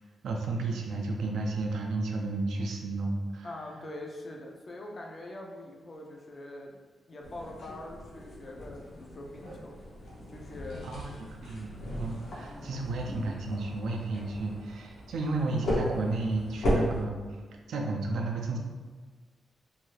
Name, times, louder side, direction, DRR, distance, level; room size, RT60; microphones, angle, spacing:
voice 1, 0.2-3.5 10.8-11.1 11.4-17.2 17.7-18.6, right 3 dB, 80° right, 1 dB, 0.4 m, -32 dB
voice 2, 3.4-6.7 7.1-9.8 10.3-10.9 12.4-12.8, left 1 dB, 30° left, 0 dB, 0.4 m, -43 dB
sound 1, 7.2-17.0, equal, 70° left, 0.7 m, -36 dB
2.7 x 2.3 x 3.1 m, 1.4 s
wide cardioid pair, 170°, 0 cm